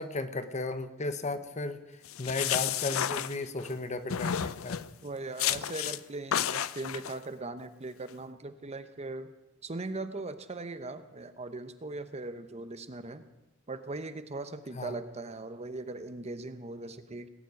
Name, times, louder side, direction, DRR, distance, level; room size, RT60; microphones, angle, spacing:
voice 1, 0.0-1.8 2.2-4.8 14.7-14.9, left 2 dB, 35° left, 11 dB, 0.9 m, -34 dB
sound 1, 2.1-3.7 4.1-4.9 5.4-6.0 6.3-7.1, left 10 dB, 85° left, 0.6 m, -31 dB
voice 2, 5.0-9.3 9.6-13.3 13.7-17.3, right 2 dB, 30° right, 10 dB, 0.9 m, -39 dB
18.5 x 7.5 x 9.5 m, 1.0 s
head